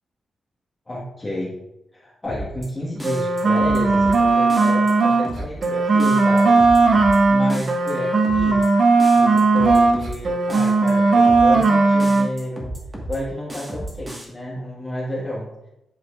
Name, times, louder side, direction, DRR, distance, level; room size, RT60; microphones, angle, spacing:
voice 1, 0.9-1.6 2.0-6.6 7.2-8.7 9.1-12.7 13.1-15.5, left 1 dB, 20° left, -8 dB, 1.7 m, -30 dB
sound 1, 2.2-2.7 3.0-4.2 4.5-4.9 5.2-5.7 6.0-7.2 7.5-7.9 8.2-8.7 9.0-10.2 10.5-10.9 11.2-11.7 12.0-13.2 13.5-14.2, right 1 dB, 20° right, 1.6 m, -33 dB
sound 2, 3.0-5.3 5.6-10.0 10.2-12.3, right 3 dB, 50° right, 0.8 m, -17 dB
10.5 x 6.2 x 2.5 m, 0.90 s
wide cardioid pair, 140°, 0 cm